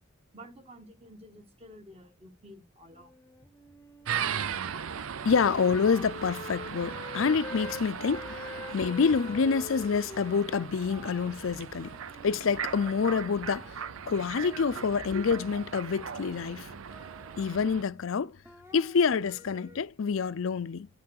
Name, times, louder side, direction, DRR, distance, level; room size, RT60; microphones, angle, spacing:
voice 1, 0.3-3.1 14.7-14.8, equal, 30° right, 1.5 m, -50 dB
Wind instrument woodwind instrument, 2.9-7.8 8.1-13.4, left 3 dB, 15° left, 0.8 m, -45 dB
sound 1, 4.0-17.8, right 7 dB, 75° right, 0.5 m, -38 dB
voice 2, 5.2-12.0 12.2-13.8 14.1-16.7 17.4-18.4 18.7-20.9, left 5 dB, 65° left, 0.5 m, -27 dB
sound 2, 8.6-18.1 18.4-19.8, right 3 dB, 10° right, 0.9 m, -54 dB
11.0 x 5.9 x 6.4 m
head